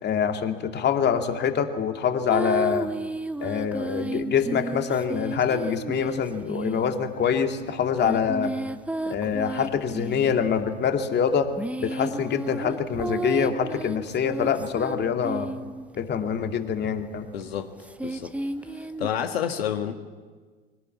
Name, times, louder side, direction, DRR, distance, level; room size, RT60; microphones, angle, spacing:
voice 1, 0.0-2.9 3.4-8.5 9.1-11.5 11.8-15.5 16.0-17.3, left 7 dB, 35° left, 5 dB, 2.4 m, -25 dB
sound 1, 2.3-7.3 8.0-10.5 11.3-16.0 17.8-19.1, right 2 dB, 5° right, 1.1 m, -33 dB
voice 2, 17.3-17.7 18.0-18.3 18.7-19.9, left 9 dB, 75° left, 6 dB, 1.7 m, -29 dB
24.0 x 18.5 x 8.7 m, 1.4 s
figure-of-eight pair, 75°, 31 cm